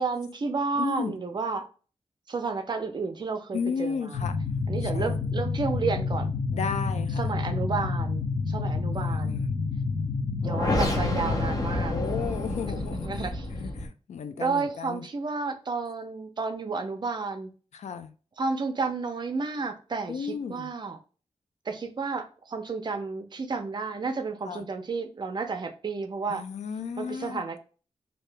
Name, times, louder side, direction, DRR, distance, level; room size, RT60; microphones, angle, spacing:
voice 1, 0.0-1.6 2.3-4.1 4.7-6.3 7.2-9.4 10.4-11.9 12.8-13.5 14.4-17.5 18.4-21.0 21.7-26.4 27.0-27.6, right 4 dB, 40° right, 0.5 m, -31 dB
voice 2, 0.8-1.2 3.5-4.4 4.8-5.2 6.5-7.2 9.0-9.5 11.9-13.3 13.5-15.0 17.7-18.1 20.1-20.7 24.4-24.6 26.3-27.5, left 6 dB, 85° left, 0.4 m, -34 dB
sound 1, 4.1-13.9, left 3 dB, 35° left, 0.7 m, -28 dB
2.8 x 2.7 x 3.3 m
wide cardioid pair, 145°, 11 cm